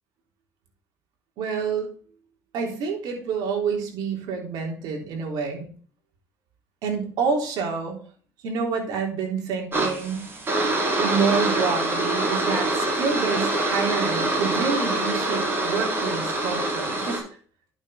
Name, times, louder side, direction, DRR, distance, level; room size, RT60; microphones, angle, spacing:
voice 1, 1.4-1.9 2.5-5.7 6.8-8.0 8.4-10.2 11.0-17.2, right 5 dB, 70° right, 2 dB, 3.6 m, -28 dB
sound 1, 9.7-17.2, right 2 dB, 30° right, 4.3 m, -25 dB
11.0 x 6.5 x 3.7 m, 0.43 s
supercardioid pair, 85°, 7 cm